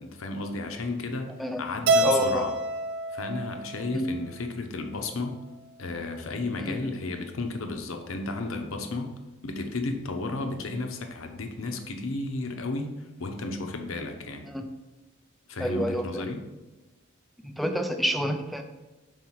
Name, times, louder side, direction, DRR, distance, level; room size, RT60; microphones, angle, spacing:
voice 1, 0.0-1.3 1.6-2.5 3.1-5.4 5.8-9.1 9.4-14.5 15.5-16.4, left 2 dB, 75° left, 5 dB, 0.9 m, -33 dB
Keyboard (musical), 1.9-4.2, right 1 dB, 60° right, 0.5 m, -27 dB
voice 2, 2.0-2.5 3.9-4.1 6.6-6.8 14.4-14.7 15.6-16.2 17.4-18.6, equal, ahead, 5 dB, 0.5 m, -28 dB
5.6 x 4.7 x 4.7 m, 1.1 s
head